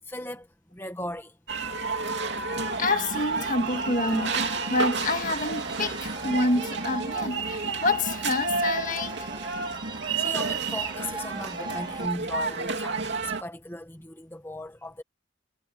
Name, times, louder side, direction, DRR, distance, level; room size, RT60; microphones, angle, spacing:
voice 1, 0.1-0.5 0.7-1.3 10.2-15.0, left 1 dB, 10° left, 1.7 m, -37 dB
sound 1, 1.5-13.4, right 4 dB, 60° right, 3.0 m, -31 dB
sound 2, 2.5-12.1, right 3 dB, 20° right, 1.9 m, -40 dB
voice 2, 2.8-9.3, left 2 dB, 40° left, 2.1 m, -28 dB
head